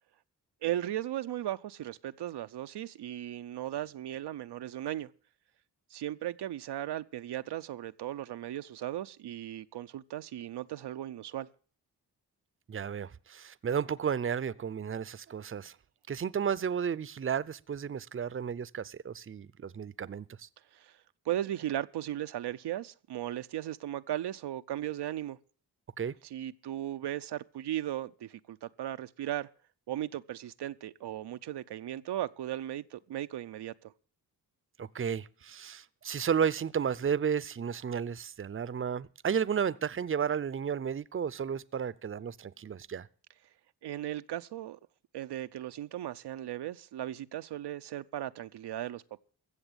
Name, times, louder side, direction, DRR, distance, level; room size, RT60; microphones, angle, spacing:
voice 1, 0.6-5.1 5.9-11.5 20.7-21.0 21.3-25.4 26.3-29.5 29.9-33.9 43.8-44.8 45.1-49.2, right 12 dB, 80° right, 0.6 m, -37 dB
voice 2, 12.7-15.8 16.1-20.5 26.0-26.1 34.8-43.1, right 7 dB, 30° right, 0.6 m, -33 dB
15.0 x 7.1 x 8.8 m
cardioid pair, 60°, 40 cm